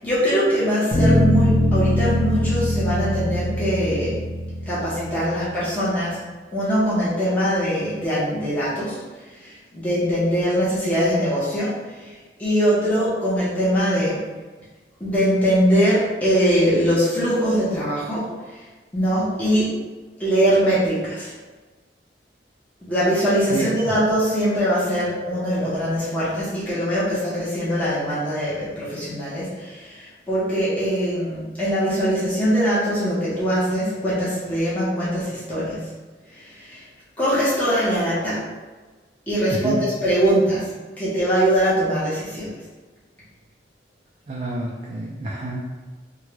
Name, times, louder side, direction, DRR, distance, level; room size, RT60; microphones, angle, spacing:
voice 1, 0.0-4.2 4.7-6.2 6.5-9.0 9.4-12.1 12.4-14.2 15.0-18.3 18.9-19.8 20.2-21.3 22.8-35.8 36.3-36.8 37.2-38.4 39.3-40.7 41.0-42.5, equal, 10° left, -11 dB, 0.8 m, -22 dB
Bass guitar, 0.9-5.3, left 1 dB, 15° right, 0.9 m, -21 dB
voice 2, 39.5-39.8 44.3-45.9, right 2 dB, 35° right, -4 dB, 0.3 m, -28 dB
3.5 x 2.2 x 3.1 m, 1.3 s
head